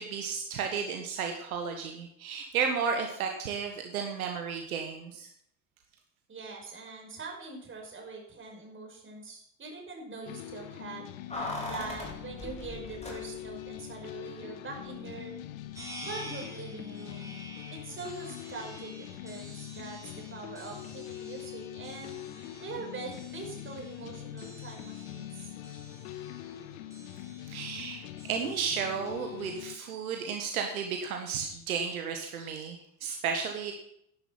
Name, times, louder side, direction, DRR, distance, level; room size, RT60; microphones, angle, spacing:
voice 1, 0.0-5.3 27.5-33.7, right 6 dB, 70° right, 4 dB, 1.7 m, -33 dB
voice 2, 6.3-11.1 11.7-15.3 16.0-17.3 17.8-22.2 22.6-25.5, right 4 dB, 25° right, 1 dB, 5.4 m, -43 dB
sound 1, 10.3-29.8, left 12 dB, 60° left, 1.2 m, -43 dB
Keys jangling, 11.3-13.7 13.9-14.0, left 1 dB, 15° left, 4.2 m, -39 dB
sound 2, 15.7-29.8, right 1 dB, 5° right, 5.1 m, -50 dB
11.5 x 11.5 x 5.9 m, 0.72 s
figure-of-eight pair, 70°, 44 cm